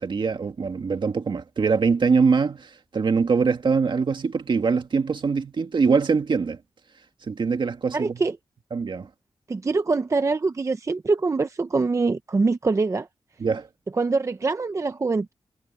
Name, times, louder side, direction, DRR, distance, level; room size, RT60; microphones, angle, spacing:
voice 1, 0.0-6.6 7.3-8.2 8.7-9.1 13.4-13.7, right 5 dB, 55° right, 2.0 m, -23 dB
voice 2, 7.9-8.4 9.5-13.1 14.0-15.3, right 3 dB, 35° right, 0.7 m, -24 dB
wide cardioid pair, 125°, 9 cm